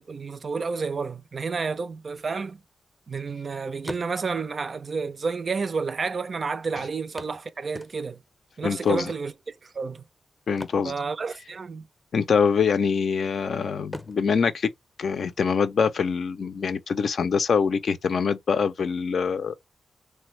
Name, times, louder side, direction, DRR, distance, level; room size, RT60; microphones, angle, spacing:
voice 1, 0.0-2.6 3.1-8.2 8.6-10.0 10.8-11.9, right 4 dB, 55° right, 0.4 m, -30 dB
sound 1, 2.5-3.4 3.7-4.6 5.5-5.6 5.8-5.9 7.2-8.4 10.4-11.7 12.0-12.2 12.7-13.4 13.8-15.6 17.6-17.7 18.1-18.2, left 1 dB, 15° left, 0.6 m, -43 dB
voice 2, 8.6-9.1 10.5-10.9 12.1-14.7 15.0-19.5, left 6 dB, 70° left, 0.4 m, -24 dB
3.3 x 2.1 x 3.1 m
cardioid pair, 65°, 0 cm